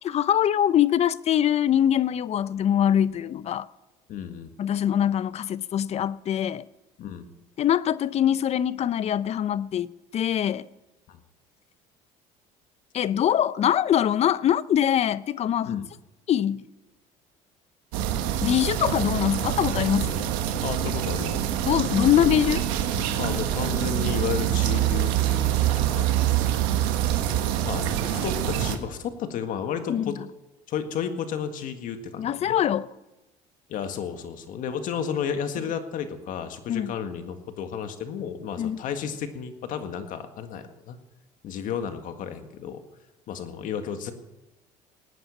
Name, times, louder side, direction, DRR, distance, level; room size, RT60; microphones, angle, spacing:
voice 1, 0.0-3.7 4.6-6.6 7.6-9.9 10.1-10.7 12.9-15.8 16.3-16.7 18.4-20.3 21.7-22.6 29.9-30.1 32.2-32.9 36.7-36.9 38.6-38.8, left 10 dB, 45° left, 0.6 m, -23 dB
voice 2, 4.1-4.5 7.0-7.2 11.1-11.2 15.7-15.9 20.6-21.5 23.2-26.1 27.7-30.2 30.7-32.6 33.7-41.0 41.4-42.8 43.3-44.1, left 7 dB, 60° left, 1.8 m, -32 dB
sound 1, 17.9-28.8, right 11 dB, 90° right, 1.4 m, -25 dB
17.5 x 9.5 x 7.1 m
supercardioid pair, 100°, 15 cm